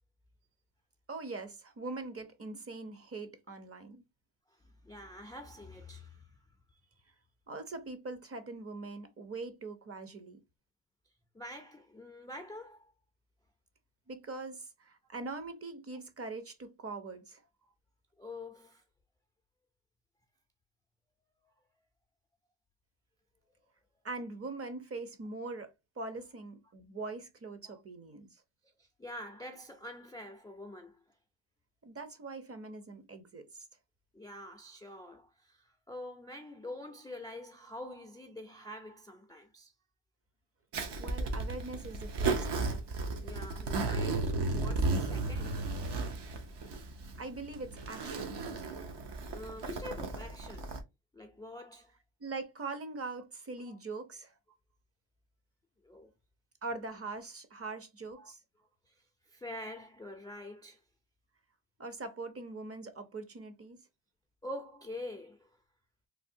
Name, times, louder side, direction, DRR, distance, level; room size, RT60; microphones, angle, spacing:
voice 1, 1.1-4.0 7.5-10.4 14.1-17.4 24.0-28.3 31.8-33.6 41.0-42.8 47.2-48.4 52.2-54.3 56.6-58.4 61.8-63.8, right 3 dB, 30° right, 0.7 m, -42 dB
voice 2, 4.6-6.4 11.3-12.9 18.2-18.8 27.6-27.8 28.8-31.0 34.1-39.7 43.2-45.7 49.3-50.8 51.1-51.9 53.6-53.8 55.8-56.1 58.1-58.3 58.9-60.8 64.4-65.6, left 1 dB, 10° left, 0.4 m, -46 dB
Zipper (clothing), 40.7-50.8, right 3 dB, 60° right, 0.9 m, -34 dB
3.4 x 2.2 x 2.6 m
cardioid pair, 85°, 46 cm